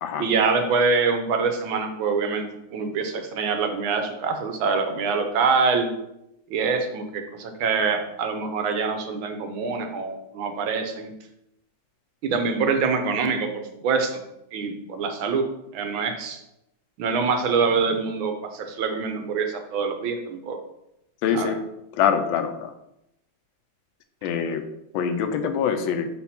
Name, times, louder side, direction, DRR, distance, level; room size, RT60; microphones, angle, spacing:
voice 1, 0.2-5.9 6.5-11.1 12.2-14.2 14.5-15.5 15.7-16.4 17.0-20.6 21.3-21.5, right 5 dB, 80° right, 5 dB, 1.6 m, -25 dB
voice 2, 21.2-21.6 21.9-22.7 24.2-24.6 24.9-26.1, left 7 dB, 80° left, 7 dB, 1.3 m, -24 dB
4.4 x 4.3 x 5.7 m, 0.83 s
omnidirectional pair, 2.2 m